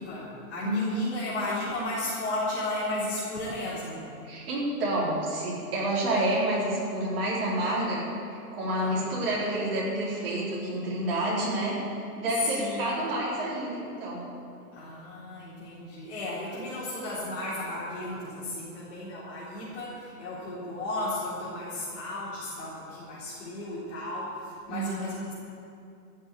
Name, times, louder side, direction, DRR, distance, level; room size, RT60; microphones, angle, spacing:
voice 1, 0.0-4.1 8.8-9.2 12.4-12.9 14.7-25.3, left 1 dB, 50° left, -10 dB, 4.0 m, -34 dB
voice 2, 4.2-14.3 24.7-25.0, right 1 dB, 35° right, -6 dB, 4.3 m, -29 dB
14.0 x 8.0 x 8.6 m, 2.5 s
hypercardioid pair, 170°, 48 cm